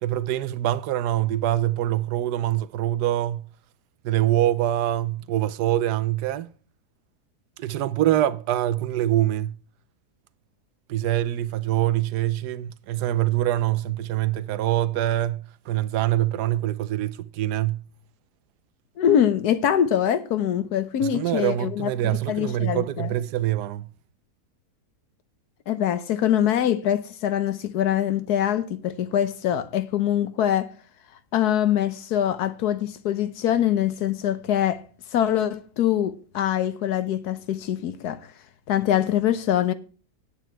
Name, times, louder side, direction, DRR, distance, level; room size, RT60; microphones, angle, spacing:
voice 1, 0.0-3.5 4.0-6.5 7.6-9.6 10.9-17.8 21.0-23.9, right 13 dB, 85° right, 1.2 m, -24 dB
voice 2, 19.0-23.1 25.7-30.7 31.3-34.8 35.1-38.2 38.7-39.7, left 10 dB, 75° left, 1.4 m, -24 dB
9.3 x 8.8 x 4.5 m
omnidirectional pair, 1.7 m